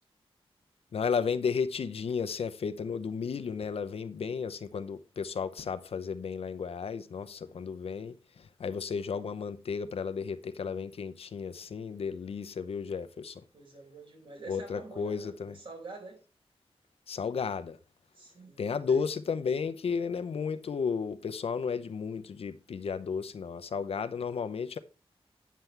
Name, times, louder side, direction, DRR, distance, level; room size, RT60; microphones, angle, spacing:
voice 1, 0.9-13.4 14.5-15.6 17.1-17.8 18.6-24.8, left 6 dB, 75° left, 0.8 m, -33 dB
voice 2, 13.5-16.2 18.1-19.1, right 3 dB, 60° right, 4.5 m, -47 dB
9.5 x 7.6 x 3.3 m
wide cardioid pair, 175°, 10 cm